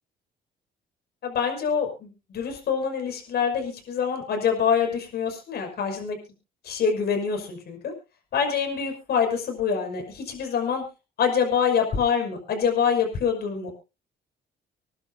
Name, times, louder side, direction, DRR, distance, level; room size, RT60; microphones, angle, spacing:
voice 1, 1.2-6.2 6.6-7.9 8.3-10.8 11.2-13.7, left 6 dB, 65° left, 3 dB, 6.0 m, -25 dB
27.0 x 11.5 x 2.7 m, 0.30 s
cardioid pair, 100°, 18 cm